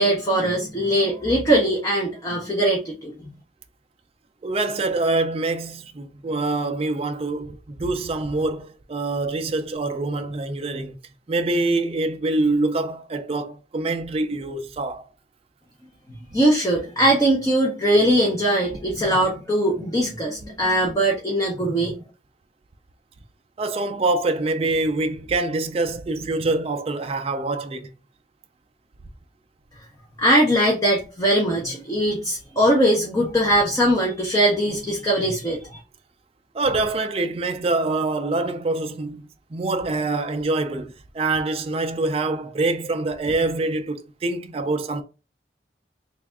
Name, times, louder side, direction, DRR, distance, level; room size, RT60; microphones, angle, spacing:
voice 1, 0.0-3.1 16.3-21.9 30.2-35.8, right 1 dB, 20° left, 0.7 m, -21 dB
voice 2, 4.4-11.0 11.3-15.1 23.6-27.9 36.5-45.0, right 2 dB, 35° right, 0.3 m, -25 dB
3.3 x 2.4 x 3.5 m
head